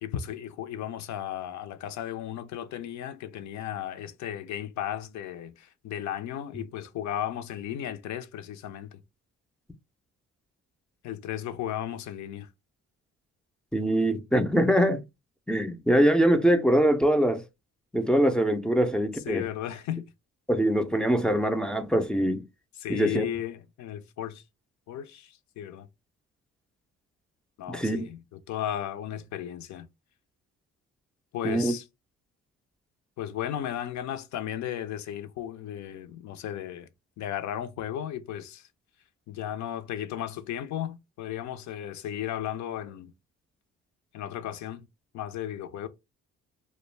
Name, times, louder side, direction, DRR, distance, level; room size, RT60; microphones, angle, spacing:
voice 1, 0.0-9.0 11.0-12.5 19.2-20.1 22.8-24.4 24.9-25.9 27.6-29.9 31.3-31.9 33.2-36.9 37.2-38.7 39.3-43.1 44.1-44.9 45.1-45.9, left 11 dB, 70° left, 0.5 m, -35 dB
voice 2, 13.7-15.0 15.5-17.4 17.9-19.5 20.5-22.4 22.9-23.3 27.7-28.1 31.4-31.7, right 1 dB, 5° left, 0.3 m, -23 dB
2.3 x 2.2 x 3.1 m
cardioid pair, 90°, 30 cm